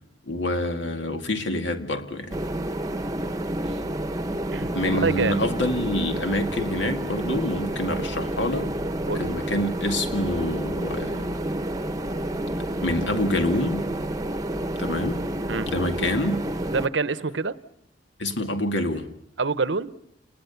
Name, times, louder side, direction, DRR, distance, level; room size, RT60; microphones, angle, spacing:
voice 1, 0.3-2.4 4.7-8.7 9.2-11.4 12.8-13.9 14.8-15.2 15.7-16.4 18.2-19.1, left 1 dB, 70° left, 2.2 m, -27 dB
sound 1, 2.3-16.9, right 1 dB, 20° right, 1.0 m, -29 dB
voice 2, 4.5-5.5 9.1-9.3 15.5-15.7 16.7-17.6 19.4-19.9, right 4 dB, 70° right, 0.8 m, -26 dB
29.5 x 20.0 x 7.0 m
head